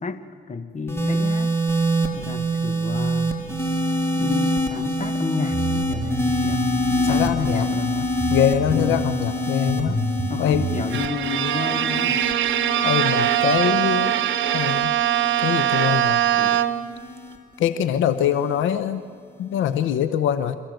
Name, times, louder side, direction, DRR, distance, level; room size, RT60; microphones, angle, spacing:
voice 1, 0.0-1.6 2.2-3.4 4.1-8.1 8.7-9.0 10.3-12.2, left 5 dB, 35° left, 10 dB, 1.7 m, -31 dB
sound 1, 0.9-17.4 18.3-18.6, equal, 10° left, 3.7 m, -26 dB
sound 2, 5.5-10.8, right 2 dB, 25° right, 7.0 m, -29 dB
voice 2, 7.0-7.7 8.3-10.0 10.4-10.7 12.8-14.2 14.5-14.9 15.4-16.6 17.6-19.0 19.4-20.6, left 9 dB, 80° left, 12 dB, 0.9 m, -23 dB
Bowed string instrument, 10.9-17.0, right 11 dB, 70° right, 1.1 m, -22 dB
27.0 x 14.5 x 8.0 m, 2.3 s
cardioid pair, 90°, 20 cm